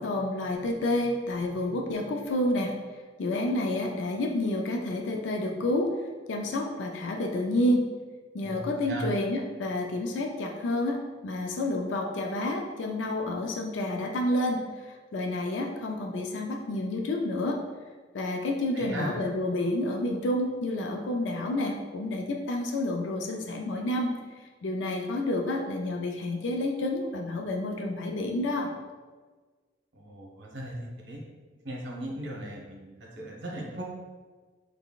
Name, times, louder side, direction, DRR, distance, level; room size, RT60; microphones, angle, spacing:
voice 1, 0.0-2.7 3.2-5.9 6.3-7.9 8.3-17.6 18.1-24.1 24.6-28.7, left 1 dB, 85° left, 2 dB, 0.4 m, -29 dB
voice 2, 8.4-9.1 18.7-19.1 30.0-31.2 31.6-33.9, right 1 dB, 75° right, -2 dB, 0.9 m, -37 dB
3.8 x 3.4 x 2.3 m, 1.4 s
head